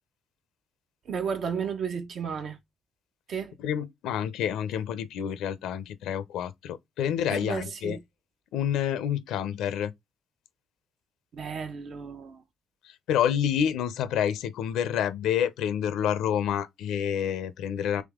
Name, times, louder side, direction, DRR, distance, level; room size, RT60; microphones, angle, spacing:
voice 1, 1.0-2.6 3.3-3.5 7.3-8.0 11.3-12.4, right 6 dB, 60° right, 0.9 m, -33 dB
voice 2, 3.6-8.0 8.5-9.9 12.8-18.0, left 9 dB, 85° left, 0.5 m, -28 dB
3.6 x 3.2 x 3.5 m
cardioid pair, 90°, 0 cm